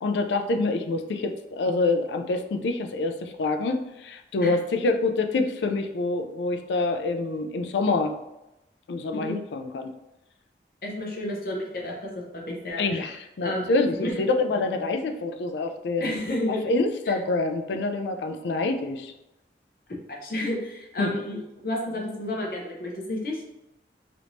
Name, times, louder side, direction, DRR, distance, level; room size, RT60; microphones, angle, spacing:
voice 1, 0.0-8.1 8.9-9.9 12.8-16.1 16.7-19.1 21.0-21.2, left 3 dB, 85° left, 6 dB, 0.4 m, -26 dB
voice 2, 10.8-14.2 16.0-16.7 17.0-17.2 20.1-23.4, left 1 dB, 55° left, -2 dB, 0.8 m, -31 dB
3.4 x 2.9 x 2.6 m, 0.93 s
head